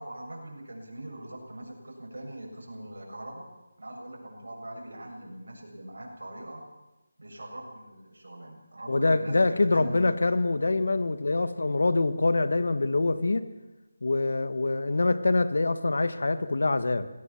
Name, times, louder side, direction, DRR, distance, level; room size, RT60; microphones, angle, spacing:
voice 1, 0.0-3.5 3.8-6.6 7.2-10.0, right 1 dB, 85° right, 1 dB, 7.3 m, -42 dB
voice 2, 8.9-13.4 14.0-17.1, left 3 dB, 70° left, 12 dB, 1.6 m, -25 dB
21.0 x 17.0 x 7.3 m, 1.0 s
figure-of-eight pair, 165°, 0 cm